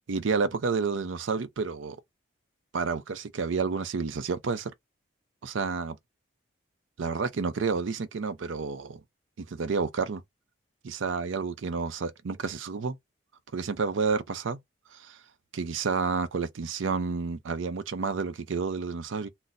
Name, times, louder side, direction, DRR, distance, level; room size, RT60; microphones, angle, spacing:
voice 1, 0.1-2.0 2.7-4.7 5.4-6.0 7.0-9.0 9.4-10.2 10.8-13.0 13.5-14.6 14.9-15.2 15.5-19.3, right 5 dB, 85° right, 0.5 m, -30 dB
2.5 x 2.0 x 3.9 m
head